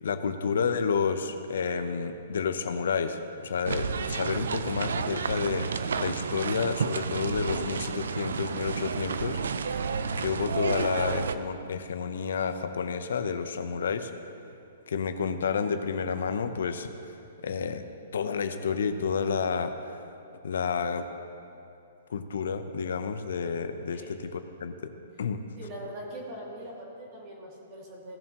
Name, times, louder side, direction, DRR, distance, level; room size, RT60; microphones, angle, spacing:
voice 1, 0.0-5.7 6.0-9.4 9.7-9.9 10.2-14.1 14.9-16.9 17.4-17.9 18.1-20.0 20.4-21.1 22.1-24.0 24.3-24.9 25.2-25.4, left 6 dB, 75° left, 9 dB, 0.8 m, -30 dB
sound 1, 3.6-11.3, right 5 dB, 90° right, 0.5 m, -31 dB
voice 2, 25.6-28.2, right 1 dB, 25° right, -3 dB, 2.3 m, -41 dB
17.0 x 7.3 x 3.0 m, 2.7 s
hypercardioid pair, 165°, 0 cm